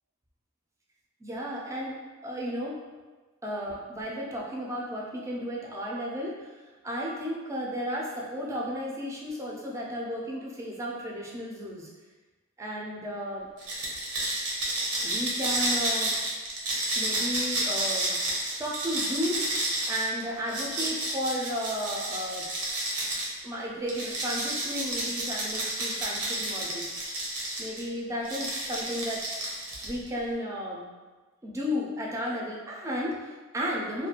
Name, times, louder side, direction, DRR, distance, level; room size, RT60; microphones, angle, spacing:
voice 1, 1.2-2.8 3.4-11.9 12.6-13.5 15.0-16.2 17.0-19.5 19.9-22.5 23.4-27.0 27.6-29.3 29.8-30.9 31.4-34.1, equal, 15° right, -3 dB, 0.4 m, -33 dB
sound 1, 13.6-23.3 23.9-27.8 28.2-30.1, right 1 dB, 85° right, 0.7 m, -31 dB
2.4 x 2.2 x 2.8 m, 1.3 s
head